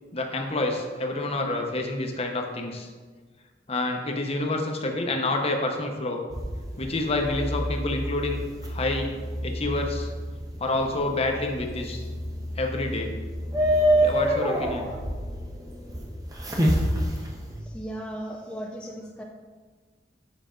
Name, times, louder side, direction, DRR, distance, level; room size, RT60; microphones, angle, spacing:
voice 1, 0.1-2.9 3.7-6.2 6.8-9.1 9.4-10.1 10.6-12.0 12.6-13.1 14.0-14.9, left 2 dB, 35° left, 3 dB, 0.9 m, -28 dB
sound 1, 6.3-17.6, equal, 20° right, 0.8 m, -28 dB
voice 2, 17.6-19.2, right 1 dB, 5° left, -1 dB, 0.5 m, -36 dB
7.4 x 5.6 x 3.8 m, 1.4 s
head